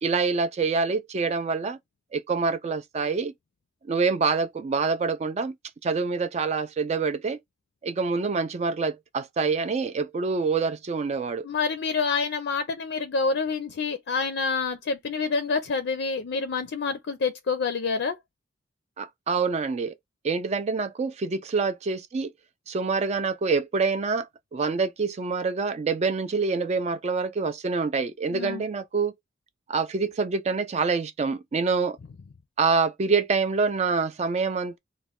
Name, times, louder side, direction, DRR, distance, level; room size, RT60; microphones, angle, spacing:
voice 1, 0.0-1.8 2.1-3.3 3.9-5.5 5.8-7.4 7.8-11.5 19.0-19.9 20.2-22.3 22.7-29.1 29.7-32.0 32.6-34.8, right 4 dB, 35° right, 0.3 m, -26 dB
voice 2, 11.4-18.2 28.3-28.6, left 4 dB, 60° left, 0.4 m, -27 dB
3.0 x 2.1 x 3.5 m
head